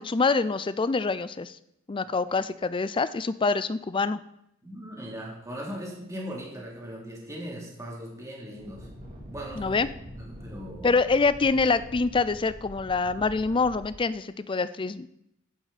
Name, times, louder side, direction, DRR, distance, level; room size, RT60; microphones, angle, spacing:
voice 1, 0.0-1.6 1.9-4.2 9.5-9.9 10.8-15.1, left 4 dB, 25° left, 15 dB, 0.4 m, -25 dB
voice 2, 4.6-8.9 9.3-9.7 10.1-11.0, equal, 15° right, -3 dB, 3.1 m, -39 dB
sound 1, 8.6-13.9, equal, 40° right, 3.0 m, -44 dB
11.0 x 11.0 x 4.2 m, 0.79 s
head